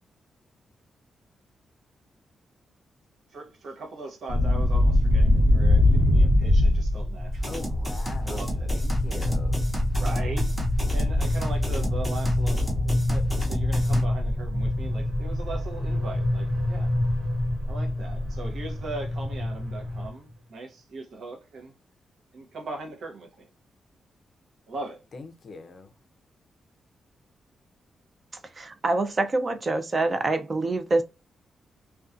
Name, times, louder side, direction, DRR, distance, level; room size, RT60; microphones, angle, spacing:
voice 1, 3.3-7.6 8.2-8.7 10.0-10.6 10.9-12.6 13.1-17.0 17.7-21.7 22.3-23.5 24.7-25.0, right 3 dB, 65° right, 0.7 m, -39 dB
sound 1, 4.3-20.1, left 1 dB, 90° right, 1.1 m, -24 dB
sound 2, 7.3-14.0, equal, 10° right, 0.8 m, -33 dB
voice 2, 7.5-8.4 8.7-9.6 25.1-25.9, left 3 dB, 45° left, 0.4 m, -42 dB
voice 3, 28.6-31.0, right 2 dB, 30° right, 0.4 m, -25 dB
2.4 x 2.2 x 2.4 m
wide cardioid pair, 140°, 0 cm